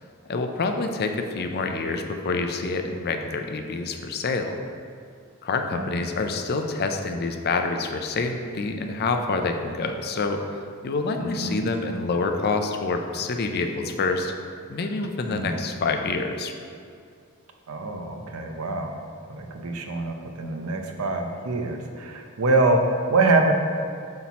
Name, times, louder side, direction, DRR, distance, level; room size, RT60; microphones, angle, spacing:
voice 1, 0.3-4.6 5.4-14.3 14.7-16.5, left 3 dB, 50° left, 5 dB, 0.5 m, -27 dB
voice 2, 11.2-11.6 15.3-15.6 17.7-18.9 19.3-23.5, right 2 dB, 85° right, 3 dB, 0.7 m, -25 dB
5.8 x 4.3 x 4.1 m, 2.3 s
head